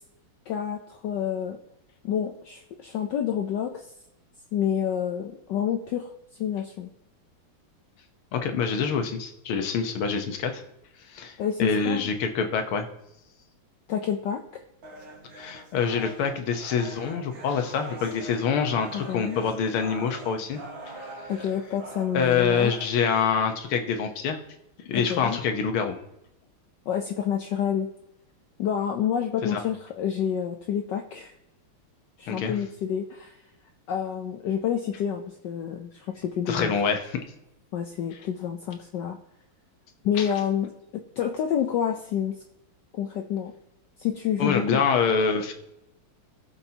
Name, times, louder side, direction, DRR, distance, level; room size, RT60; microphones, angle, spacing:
voice 1, 0.5-1.6 2.0-3.9 4.5-6.1 6.4-6.9 11.4-12.1 13.9-14.6 18.9-19.4 21.3-22.7 24.9-25.4 26.9-27.9 28.6-31.3 32.2-33.4 33.9-36.7 37.7-39.2 40.0-42.4 43.0-43.5 44.0-44.8, left 9 dB, 65° left, 4 dB, 1.2 m, -28 dB
voice 2, 8.3-10.6 11.1-12.9 15.3-20.6 20.9-21.0 22.1-24.4 24.9-26.0 29.4-29.6 32.3-32.5 36.5-37.2 40.2-40.3 44.4-45.5, left 6 dB, 80° left, 6 dB, 2.0 m, -26 dB
sound 1, 14.8-22.8, right 2 dB, 70° right, 2.5 m, -43 dB
18.0 x 7.2 x 2.8 m, 0.88 s
omnidirectional pair, 2.3 m